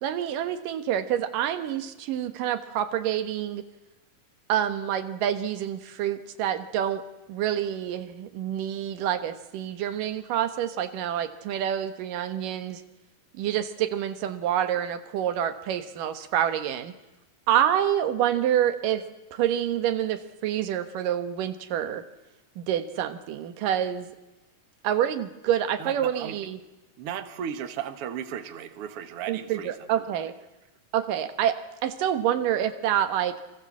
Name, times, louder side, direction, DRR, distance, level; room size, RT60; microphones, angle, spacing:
voice 1, 0.0-3.6 4.5-7.0 7.3-12.8 13.4-16.9 17.5-19.0 19.3-22.0 22.6-24.1 24.8-26.6 29.3-30.3 30.9-31.6 31.8-33.3, right 10 dB, 90° right, 9 dB, 2.9 m, -27 dB
voice 2, 25.8-26.3 27.0-29.8, right 8 dB, 50° right, 8 dB, 2.1 m, -35 dB
29.5 x 23.5 x 7.4 m, 1.1 s
omnidirectional pair, 3.7 m